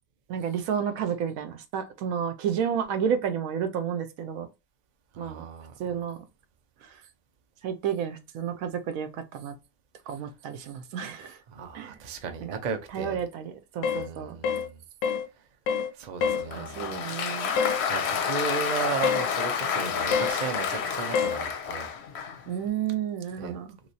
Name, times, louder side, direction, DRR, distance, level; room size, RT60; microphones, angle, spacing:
voice 1, 0.3-4.5 5.2-5.5 5.8-6.2 6.8-6.9 7.6-9.6 10.1-11.4 11.7-12.0 12.4-12.6 12.9-14.4 16.5-17.5 22.5-23.8, right 8 dB, 80° right, 1.0 m, -31 dB
voice 2, 5.1-5.7 11.5-13.3 13.9-14.8 15.9-17.0 17.9-21.9 23.4-23.5, right 5 dB, 50° right, 0.5 m, -35 dB
sound 1, 13.8-14.1 14.4-14.7 15.0-15.3 15.7-15.9 16.2-16.5 17.6-17.8 19.0-19.3 20.1-20.4 21.1-21.4, left 6 dB, 85° left, 1.1 m, -26 dB
Applause, 16.3-22.5, left 6 dB, 60° left, 0.7 m, -30 dB
3.2 x 3.0 x 2.6 m
omnidirectional pair, 1.5 m